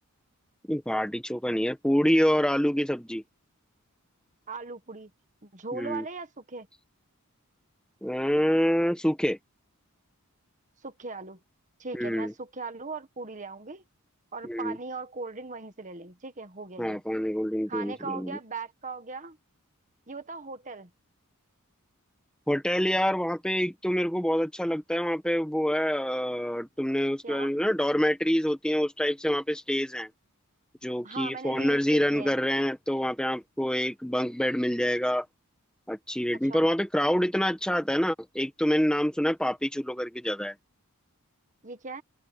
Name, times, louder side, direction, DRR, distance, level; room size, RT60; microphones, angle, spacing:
voice 1, 0.7-3.2 5.7-6.0 8.0-9.4 11.9-12.3 14.4-14.8 16.8-18.4 22.5-30.1 30.8-35.2 35.9-40.5, equal, 5° left, 1.6 m, -26 dB
voice 2, 4.5-5.1 5.4-6.7 10.8-11.4 11.8-13.8 14.3-17.0 17.7-19.4 20.1-20.9 27.2-27.5 31.0-32.4 36.5-36.7 41.6-42.0, right 4 dB, 35° right, 1.6 m, -39 dB
head